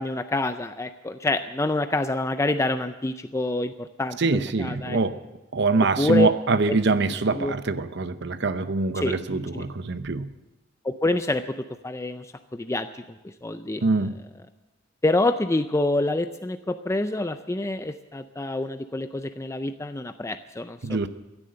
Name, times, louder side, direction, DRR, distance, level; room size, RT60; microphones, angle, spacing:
voice 1, 0.0-5.0 6.0-6.3 6.7-6.8 7.4-7.5 9.0-9.2 9.5-9.6 10.8-11.4 11.8-12.3 12.5-13.0 13.4-13.8 15.0-21.1, left 2 dB, 15° left, 9 dB, 0.4 m, -26 dB
voice 2, 4.2-5.2 5.5-10.3 13.8-14.1 20.8-21.1, right 3 dB, 60° right, 12 dB, 0.8 m, -24 dB
16.0 x 10.5 x 7.7 m, 1.1 s
head